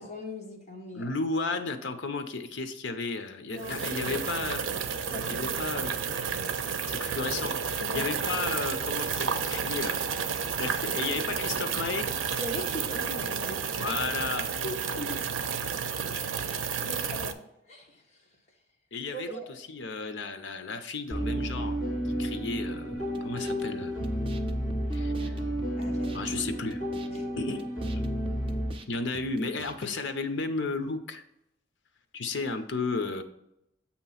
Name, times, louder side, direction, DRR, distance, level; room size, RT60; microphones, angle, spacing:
voice 1, 0.0-1.1 3.5-4.2 5.1-5.8 7.8-8.2 12.4-14.2 14.6-15.3 16.5-17.4 17.7-18.2 19.1-19.6 25.8-26.5 27.1-27.3, left 1 dB, 35° left, 0 dB, 1.2 m, -40 dB
voice 2, 0.9-4.7 5.3-5.9 6.9-10.0 10.3-12.1 13.8-14.5 18.9-21.8 22.2-24.1 24.9-25.4 26.1-26.8 27.4-27.6 28.9-31.2 32.1-33.2, left 3 dB, 70° left, 8 dB, 0.7 m, -33 dB
sound 1, 3.5-17.3, right 6 dB, 90° right, 0.6 m, -31 dB
sound 2, 21.1-28.7, equal, ahead, 2.5 m, -31 dB
sound 3, 22.9-30.0, right 2 dB, 25° right, 0.4 m, -48 dB
7.7 x 2.9 x 5.6 m, 0.81 s
head